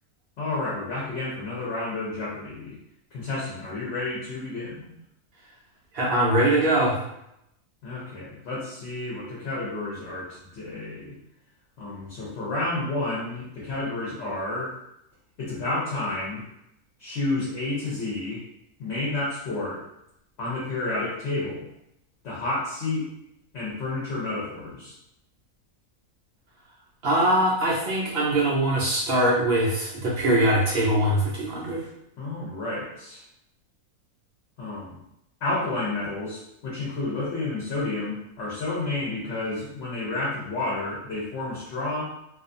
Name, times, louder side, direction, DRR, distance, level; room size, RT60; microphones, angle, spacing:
voice 1, 0.4-2.8 3.1-4.9 7.8-11.2 11.8-14.7 15.4-16.4 17.0-18.4 18.8-19.8 20.4-21.6 22.2-23.0 23.5-24.9 32.2-33.2 34.6-34.9 35.4-42.0, left 2 dB, 55° left, -6 dB, 0.8 m, -30 dB
voice 2, 5.9-7.0 27.0-31.9, right 1 dB, 85° right, -5 dB, 0.5 m, -22 dB
2.4 x 2.4 x 2.5 m, 0.80 s
omnidirectional pair, 1.6 m